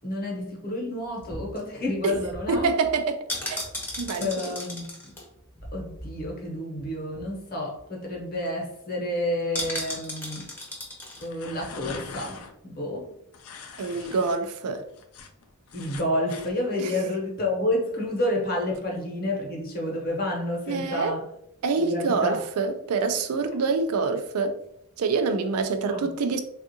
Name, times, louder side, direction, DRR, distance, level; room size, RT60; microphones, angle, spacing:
voice 1, 0.0-2.7 4.2-5.1 5.7-10.5 11.2-13.1 15.7-21.2 21.8-22.4 25.9-26.1, left 1 dB, 40° left, 0.9 m, -30 dB
sound 1, 1.0-6.5 6.8-6.9 7.1-7.4 7.8-7.9 8.1-8.5 9.5-11.3 11.6-11.7, left 1 dB, 10° left, 0.7 m, -36 dB
voice 2, 2.5-3.6 4.0-4.5 13.8-14.8 16.8-17.1 20.7-21.2 21.6-24.6 25.0-26.4, right 4 dB, 75° right, 0.4 m, -26 dB
sound 2, 11.2-12.5 13.3-14.4 14.7-16.5, left 5 dB, 75° left, 0.4 m, -42 dB
3.5 x 2.4 x 2.7 m
head